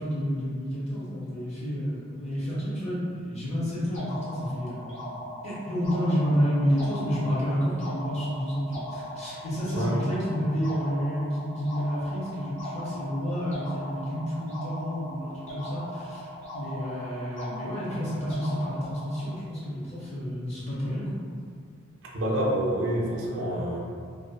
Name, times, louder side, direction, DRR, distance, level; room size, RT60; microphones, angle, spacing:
voice 1, 0.0-21.1, equal, 30° left, -9 dB, 0.8 m, -30 dB
sound 1, 3.9-19.3, equal, 65° left, 0.8 m, -39 dB
voice 2, 22.1-23.8, right 1 dB, 65° right, -3 dB, 0.4 m, -27 dB
2.5 x 2.3 x 2.2 m, 2.1 s
head